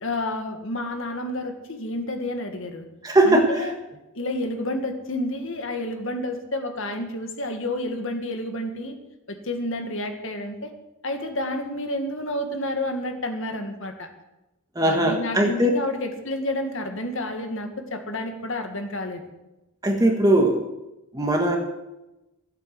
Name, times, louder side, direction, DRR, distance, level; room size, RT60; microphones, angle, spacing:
voice 1, 0.0-2.9 3.2-3.7 4.1-9.0 9.3-10.7 11.0-14.1 14.8-19.2, left 1 dB, 60° left, 6 dB, 2.0 m, -30 dB
voice 2, 3.0-3.7 14.7-15.7 19.8-20.6 21.1-21.6, right 1 dB, 15° right, 2 dB, 1.5 m, -20 dB
15.0 x 8.2 x 7.7 m, 0.97 s
head